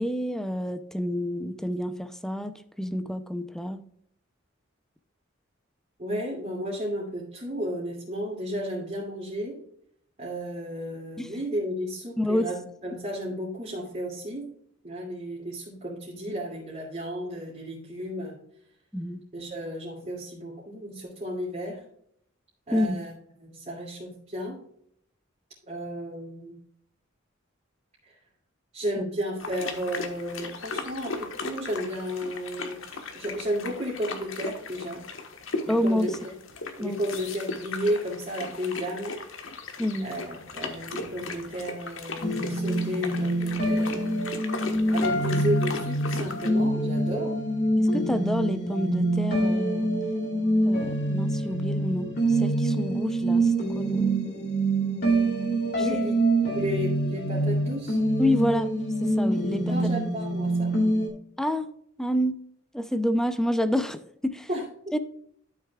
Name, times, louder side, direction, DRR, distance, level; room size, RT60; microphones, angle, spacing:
voice 1, 0.0-3.8 11.2-11.3 12.2-12.5 18.9-19.2 22.7-23.0 29.0-29.1 35.7-36.2 36.8-37.0 39.8-40.1 47.8-49.9 50.6-54.5 55.8-55.9 58.2-59.7 61.4-62.4 62.7-64.5 64.9-65.0, left 1 dB, 5° left, 0.5 m, -28 dB
voice 2, 6.0-9.6 10.2-14.5 14.8-18.4 19.3-21.8 22.7-23.1 23.4-24.6 25.6-26.6 28.0-28.2 28.7-35.1 35.6-36.1 36.8-39.1 39.4-39.6 40.0-44.2 44.9-47.4 55.8-58.0 59.5-60.8 64.5-64.9, equal, 35° right, 2.5 m, -33 dB
sound 1, 29.4-46.5, left 3 dB, 80° left, 1.3 m, -37 dB
sound 2, 42.2-61.1, right 1 dB, 55° left, 2.5 m, -25 dB
12.0 x 6.7 x 2.3 m
head